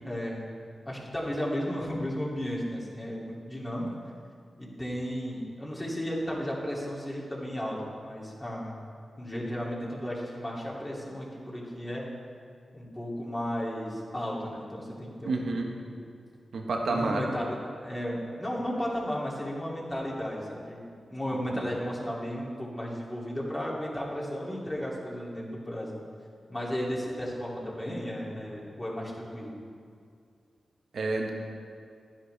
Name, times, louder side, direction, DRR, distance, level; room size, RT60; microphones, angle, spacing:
voice 1, 0.0-0.4 0.9-3.9 4.6-8.8 9.2-12.1 12.7-16.0 16.8-17.6 17.8-26.0 26.5-29.5, equal, 20° left, -5 dB, 2.6 m, -34 dB
voice 2, 15.2-15.7 16.5-17.2 21.5-21.6 30.9-31.3, right 3 dB, 75° right, 1 dB, 1.2 m, -29 dB
11.5 x 10.0 x 3.4 m, 2.3 s
cardioid pair, 70°, 0 cm